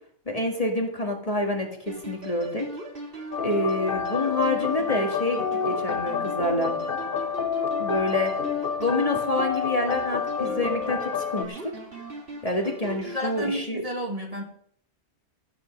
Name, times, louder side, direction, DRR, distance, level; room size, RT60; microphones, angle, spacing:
voice 1, 0.3-2.7 3.4-6.8 7.8-8.3 8.8-11.7 12.4-13.8, left 1 dB, 30° left, 1 dB, 1.9 m, -27 dB
sound 1, 1.9-13.6, right 2 dB, 50° right, 2.4 m, -40 dB
sound 2, 3.3-11.4, left 6 dB, 55° left, 1.1 m, -29 dB
voice 2, 13.1-14.4, equal, 30° right, 1 dB, 2.0 m, -31 dB
14.5 x 8.5 x 5.2 m, 0.65 s
omnidirectional pair, 1.2 m